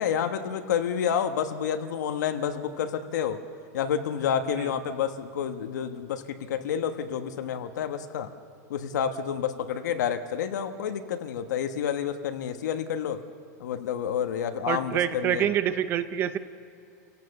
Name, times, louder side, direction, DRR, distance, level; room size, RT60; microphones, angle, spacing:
voice 1, 0.0-3.4 3.7-8.3 8.7-13.2 13.6-15.4, left 8 dB, 80° left, 7 dB, 1.3 m, -29 dB
voice 2, 14.7-16.4, right 10 dB, 25° right, 12 dB, 0.7 m, -26 dB
29.0 x 17.0 x 6.6 m, 2.6 s
supercardioid pair, 170°, 9 cm